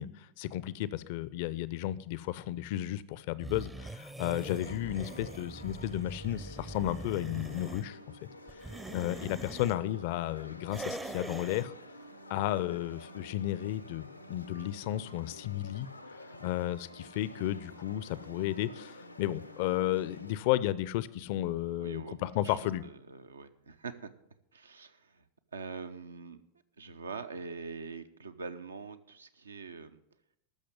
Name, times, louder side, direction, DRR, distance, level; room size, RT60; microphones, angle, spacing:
voice 1, 0.0-8.2 8.9-11.7 12.3-15.9 16.4-22.8, left 14 dB, 50° left, 18 dB, 0.5 m, -33 dB
sound 1, 3.4-7.9 8.5-9.8 10.7-11.7, right 2 dB, 10° right, 0.6 m, -42 dB
sound 2, 4.3-20.4, left 1 dB, 90° left, 0.8 m, -50 dB
voice 2, 9.0-9.3 17.4-17.5 21.3-21.5 21.7-24.1 24.5-25.2 25.5-26.4 26.8-30.0, right 4 dB, 75° right, 10 dB, 0.8 m, -44 dB
13.5 x 6.4 x 9.4 m, 0.80 s
figure-of-eight pair, 90°, 0 cm